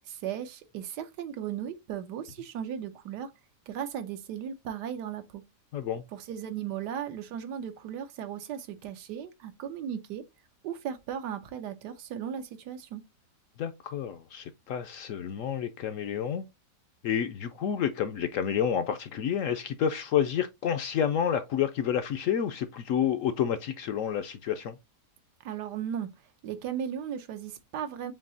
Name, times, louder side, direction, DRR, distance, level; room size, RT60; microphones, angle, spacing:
voice 1, 0.1-3.3 3.7-5.4 6.1-10.2 10.6-13.0 25.4-26.1 26.4-28.1, right 9 dB, 85° right, 1.3 m, -36 dB
voice 2, 5.7-6.0 13.6-16.5 17.0-24.8, left 8 dB, 70° left, 0.8 m, -29 dB
7.3 x 2.7 x 2.6 m
omnidirectional pair, 1.8 m